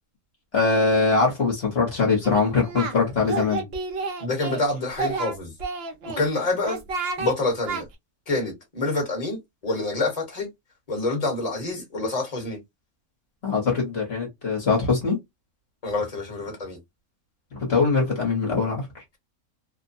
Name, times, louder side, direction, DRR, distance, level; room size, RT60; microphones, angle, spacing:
voice 1, 0.5-3.6 13.4-15.2 17.5-18.8, left 4 dB, 45° left, 1.2 m, -22 dB
Singing, 2.2-3.0 3.3-4.6 4.9-6.2 6.6-7.3 7.7-7.8, right 4 dB, 60° right, 0.7 m, -30 dB
voice 2, 4.2-5.5 6.0-6.8 7.2-7.9 8.3-10.5 10.9-12.6 15.8-16.8, left 2 dB, 25° left, 1.1 m, -27 dB
2.9 x 2.1 x 2.5 m
omnidirectional pair, 1.6 m